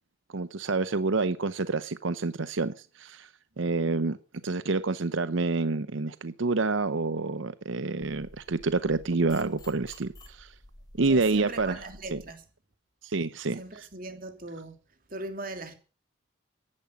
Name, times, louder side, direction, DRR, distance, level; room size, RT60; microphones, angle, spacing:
voice 1, 0.3-3.3 3.6-4.2 4.4-10.5 11.0-11.8 12.1-12.2 13.0-13.9, right 3 dB, 85° right, 0.8 m, -28 dB
sound 1, 8.0-12.3, left 1 dB, 20° left, 3.1 m, -51 dB
voice 2, 11.0-12.4 13.6-14.7 15.1-15.7, right 2 dB, 45° right, 3.1 m, -39 dB
14.5 x 11.0 x 8.5 m
head